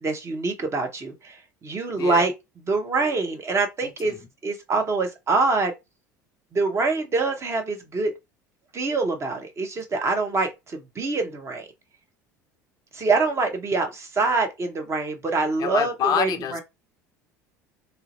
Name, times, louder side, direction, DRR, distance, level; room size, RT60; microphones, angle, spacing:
voice 1, 0.0-2.3 2.7-4.2 4.4-5.7 6.5-8.1 8.7-11.7 12.9-16.6, right 3 dB, 30° right, 1.0 m, -25 dB
voice 2, 15.6-16.6, left 7 dB, 40° left, 0.6 m, -26 dB
3.2 x 2.7 x 2.6 m
figure-of-eight pair, 65°, 10 cm